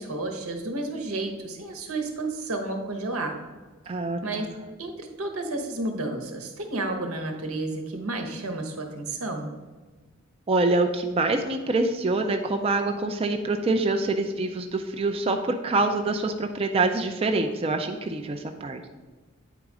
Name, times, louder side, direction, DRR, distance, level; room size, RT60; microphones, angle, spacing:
voice 1, 0.0-3.4 4.2-4.5 4.8-9.5, right 2 dB, 90° right, 4 dB, 1.1 m, -31 dB
voice 2, 3.9-4.5 10.5-18.9, right 2 dB, 25° right, 5 dB, 0.4 m, -25 dB
9.1 x 4.0 x 4.8 m, 1.3 s
head